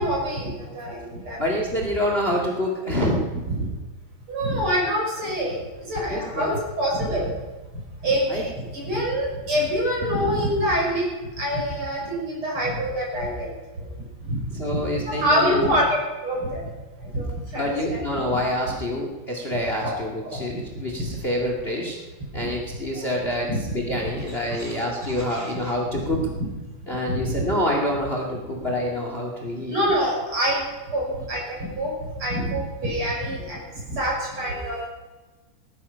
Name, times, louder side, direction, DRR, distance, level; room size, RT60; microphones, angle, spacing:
voice 1, 0.0-1.4 3.5-3.7 4.3-5.6 5.8-7.3 8.0-11.1 11.4-13.5 14.2-16.6 17.1-18.0 19.8-20.0 20.2-20.6 21.0-21.1 22.4-22.5 22.9-23.1 23.5-23.6 23.9-24.2 24.6-24.7 25.4-25.5 26.1-26.2 27.1-27.2 29.6-30.6 30.9-34.9, equal, 30° right, -3 dB, 6.8 m, -26 dB
voice 2, 1.4-3.3 6.1-6.5 8.3-8.4 10.0-10.6 14.5-15.7 17.6-22.0 22.3-26.2 26.9-29.8, left 1 dB, 70° left, 0 dB, 0.5 m, -27 dB
19.5 x 13.0 x 5.6 m, 1.2 s
omnidirectional pair, 5.2 m